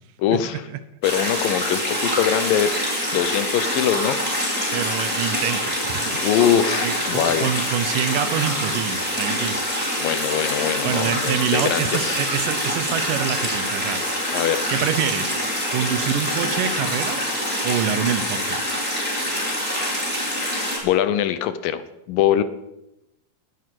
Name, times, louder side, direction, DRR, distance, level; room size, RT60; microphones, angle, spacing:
voice 1, 0.2-0.6 1.0-2.8 3.1-4.6 6.1-7.5 10.0-12.2 14.3-14.6 19.3-19.8 20.8-22.4, left 10 dB, 80° left, 12 dB, 2.6 m, -23 dB
sound 1, 1.0-20.8, equal, 5° right, 5.5 m, -25 dB
voice 2, 4.7-6.2 6.7-9.8 10.8-14.0 14.7-15.4 15.7-17.3 17.6-18.6, right 9 dB, 75° right, 12 dB, 2.5 m, -26 dB
19.5 x 11.0 x 6.1 m, 0.90 s
omnidirectional pair, 4.1 m